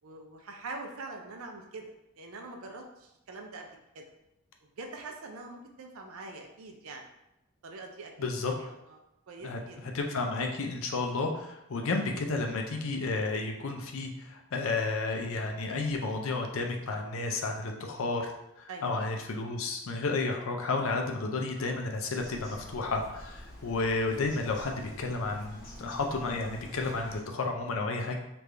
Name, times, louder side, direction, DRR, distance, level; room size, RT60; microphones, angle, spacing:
voice 1, 0.0-1.9 2.2-4.0 4.6-7.0 7.6-8.1 8.5-9.0 9.3-9.8 11.8-11.9 18.7-18.9, right 3 dB, 70° right, 2 dB, 0.5 m, -44 dB
voice 2, 8.2-8.5 9.4-9.6 9.9-18.3 18.6-28.2, left 3 dB, 65° left, 3 dB, 0.5 m, -32 dB
Bird vocalization bird call bird song, 22.2-27.2, equal, 40° left, 1.0 m, -47 dB
3.3 x 2.5 x 3.3 m, 0.89 s
head